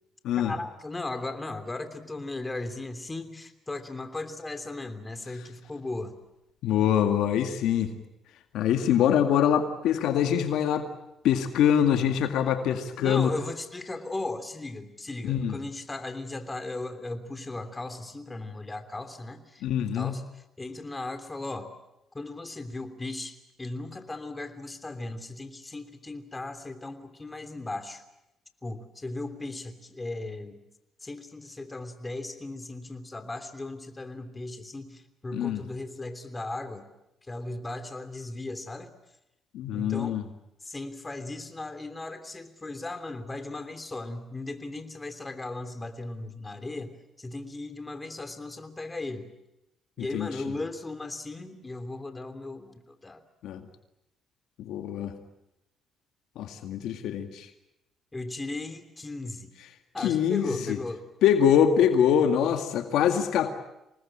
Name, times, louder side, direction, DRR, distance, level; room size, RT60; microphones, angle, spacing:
voice 1, 0.4-6.1 13.0-21.7 22.1-28.0 28.6-30.6 31.0-36.9 37.3-38.9 39.7-40.2 40.6-49.3 50.0-53.2 58.1-59.5 59.9-61.1, left 2 dB, 20° left, 8 dB, 3.1 m, -37 dB
voice 2, 6.6-7.9 8.5-10.9 11.2-13.3 15.2-15.6 19.6-20.2 35.3-35.6 39.5-40.2 50.0-50.3 53.4-53.6 54.6-55.1 56.4-57.5 60.0-60.8 61.2-63.5, left 9 dB, 80° left, 6 dB, 2.0 m, -24 dB
26.0 x 19.5 x 8.8 m, 0.90 s
supercardioid pair, 70°, 0 cm